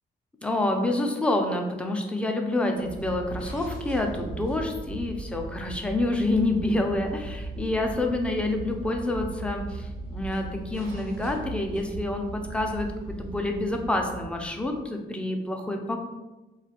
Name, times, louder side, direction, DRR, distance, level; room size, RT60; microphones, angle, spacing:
voice 1, 0.4-12.9 13.2-16.0, left 2 dB, 5° left, 3 dB, 0.3 m, -27 dB
sound 1, 2.7-14.9, right 2 dB, 90° right, 0.6 m, -38 dB
2.3 x 2.2 x 2.8 m, 1.1 s
cardioid pair, 90°, 19 cm